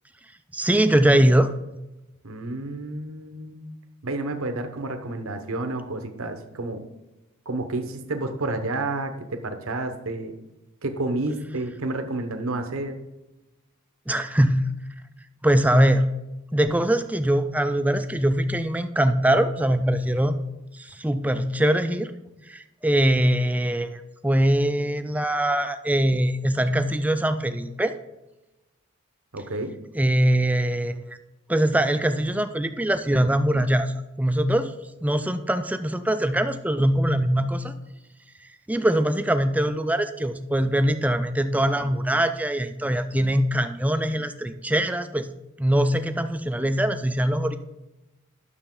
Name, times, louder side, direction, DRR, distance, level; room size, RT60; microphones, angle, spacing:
voice 1, 0.5-1.5 14.1-14.6 15.4-16.1 16.5-20.4 20.7-22.1 22.5-27.9 29.9-31.2 31.5-34.7 35.0-37.7 38.7-45.3 45.6-47.6, right 1 dB, 5° right, 9 dB, 0.4 m, -22 dB
voice 2, 2.2-3.6 4.0-6.9 7.5-9.1 9.4-10.3 10.8-12.9 29.3-29.7, right 2 dB, 70° right, 6 dB, 1.0 m, -30 dB
9.8 x 6.6 x 3.8 m, 1.0 s
head